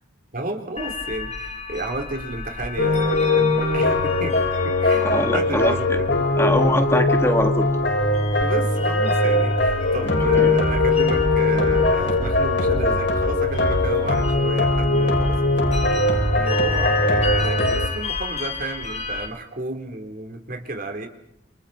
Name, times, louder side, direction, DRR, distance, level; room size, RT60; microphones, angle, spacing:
voice 1, 0.3-6.1 8.4-15.8 16.3-21.1, right 2 dB, 50° right, 3 dB, 4.1 m, -32 dB
sound 1, 0.8-19.3, left 4 dB, 35° left, 2.6 m, -33 dB
sound 2, 2.8-17.9, left 2 dB, 65° left, 7.1 m, -20 dB
voice 2, 5.0-6.0 6.4-7.7 10.0-10.6, left 1 dB, 15° left, 5 dB, 1.8 m, -23 dB
29.0 x 29.0 x 4.5 m, 0.75 s
head